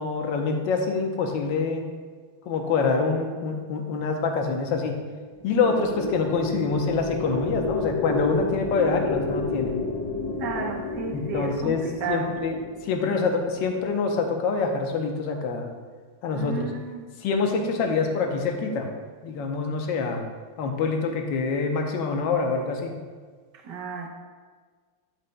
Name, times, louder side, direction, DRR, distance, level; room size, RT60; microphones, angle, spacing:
voice 1, 0.0-1.9 2.5-5.0 5.4-9.7 11.1-12.6 12.8-15.7 16.2-16.7 17.2-18.9 19.2-20.2 20.6-23.0, left 4 dB, 70° left, 3 dB, 1.4 m, -25 dB
sound 1, 5.3-13.9, left 3 dB, 30° left, 0.5 m, -31 dB
voice 2, 10.4-12.3 16.3-17.0 23.6-24.1, right 5 dB, 60° right, 1 dB, 1.4 m, -32 dB
12.0 x 5.2 x 2.2 m, 1.5 s
omnidirectional pair, 2.3 m